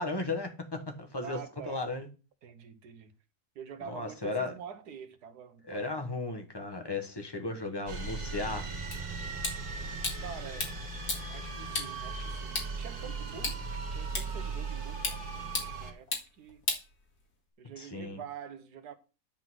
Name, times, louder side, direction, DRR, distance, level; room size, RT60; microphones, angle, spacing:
voice 1, 0.0-2.1 3.8-4.5 5.7-8.7 17.8-18.2, left 3 dB, 15° left, 1.1 m, -35 dB
voice 2, 1.2-1.8 2.4-3.1 3.5-6.1 10.2-10.7 11.3-16.6 17.6-18.9, right 7 dB, 85° right, 1.5 m, -46 dB
sound 1, 7.9-15.9, right 4 dB, 70° right, 2.2 m, -38 dB
sound 2, 8.9-17.5, left 3 dB, 75° left, 2.5 m, -39 dB
10.5 x 3.9 x 6.2 m
omnidirectional pair, 1.7 m